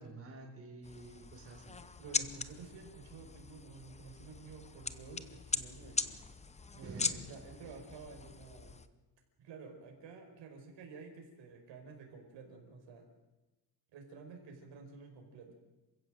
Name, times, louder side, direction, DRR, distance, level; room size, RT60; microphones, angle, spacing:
voice 1, 0.0-1.8 6.8-7.2 7.6-7.8, right 3 dB, 30° right, 1 dB, 4.2 m, -49 dB
sound 1, 0.8-8.9, left 4 dB, 15° left, 0.7 m, -41 dB
voice 2, 2.0-6.2 6.7-8.8 9.4-13.1 13.9-15.5, right 4 dB, 85° right, 2 dB, 5.1 m, -51 dB
27.0 x 16.0 x 7.7 m, 1.1 s
cardioid pair, 175°, 43 cm